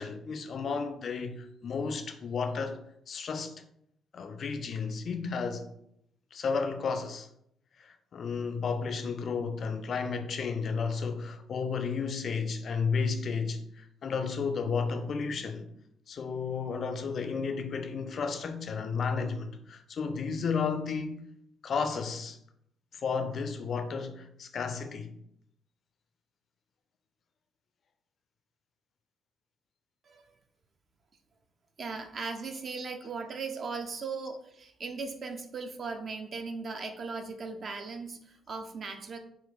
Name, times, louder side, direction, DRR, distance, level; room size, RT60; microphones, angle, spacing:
voice 1, 0.0-2.8 3.1-3.5 4.1-5.6 6.3-7.3 7.8-15.7 16.1-21.2 21.6-22.4 22.9-25.1, left 5 dB, 45° left, 0.4 m, -33 dB
voice 2, 31.8-39.2, right 4 dB, 45° right, 0.5 m, -38 dB
3.8 x 2.2 x 3.8 m
figure-of-eight pair, 40°, 0 cm